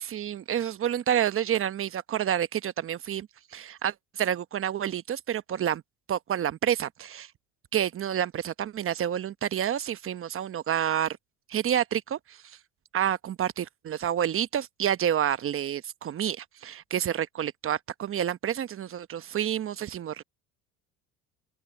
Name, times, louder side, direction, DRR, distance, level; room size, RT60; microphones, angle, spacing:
voice 1, 0.0-3.3 3.5-5.8 6.1-7.3 7.7-11.2 11.5-12.4 12.9-20.2, right 10 dB, 40° right, 1.0 m, -29 dB
open air
supercardioid pair, 90°, 33 cm